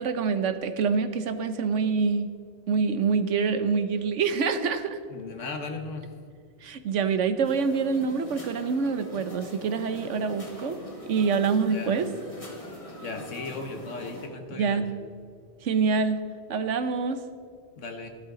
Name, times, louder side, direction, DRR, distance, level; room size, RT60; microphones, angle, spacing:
voice 1, 0.0-2.3 2.7-5.0 6.6-10.8 11.1-12.1 14.6-14.9 15.6-16.2 16.5-17.2, right 5 dB, 85° right, 10 dB, 1.2 m, -26 dB
voice 2, 5.1-6.1 11.7-11.9 13.0-14.9 17.8-18.1, left 3 dB, 90° left, 5 dB, 1.7 m, -36 dB
sound 1, 7.4-14.3, equal, 30° left, 2.0 m, -43 dB
14.5 x 12.5 x 3.8 m, 2.2 s
omnidirectional pair, 1.2 m